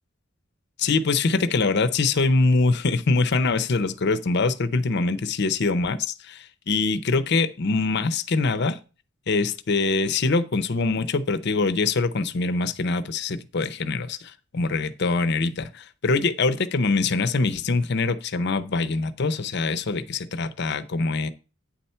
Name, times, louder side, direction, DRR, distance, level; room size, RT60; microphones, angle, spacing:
voice 1, 0.8-8.8 9.3-21.3, left 3 dB, 55° left, 0.6 m, -24 dB
9.0 x 4.4 x 5.5 m
head